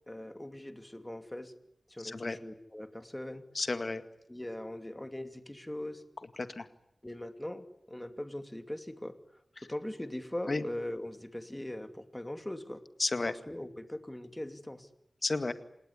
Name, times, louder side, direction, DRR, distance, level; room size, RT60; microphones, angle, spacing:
voice 1, 0.1-1.5 1.9-3.4 4.3-6.0 7.0-9.2 9.6-12.8 13.3-14.9, left 1 dB, 20° left, 8 dB, 2.5 m, -41 dB
voice 2, 2.0-2.4 3.5-4.0 6.4-6.7 9.6-9.7 10.5-10.6 13.0-13.3 15.2-15.5, left 3 dB, 60° left, 9 dB, 2.0 m, -32 dB
28.5 x 19.0 x 9.7 m, 0.78 s
wide cardioid pair, 50°, 0 cm